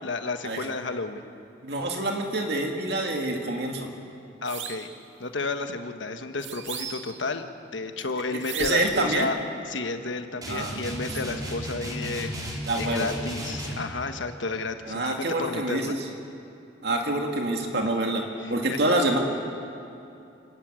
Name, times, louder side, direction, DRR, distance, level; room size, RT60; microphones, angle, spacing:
voice 1, 0.0-1.2 4.4-4.9 5.2-7.4 7.7-9.4 9.7-12.3 12.8-16.0 18.4-18.8, left 3 dB, 80° left, 7 dB, 1.3 m, -32 dB
voice 2, 1.6-3.9 8.5-9.3 10.5-10.7 12.7-13.1 14.9-16.0 16.8-19.2, right 2 dB, 60° right, 2 dB, 2.2 m, -26 dB
sound 1, 4.4-4.9 6.4-7.2 8.4-9.0, right 7 dB, 85° right, 2.0 m, -36 dB
sound 2, 10.4-13.9, equal, 20° right, 3.5 m, -34 dB
28.5 x 12.5 x 9.0 m, 2.7 s
head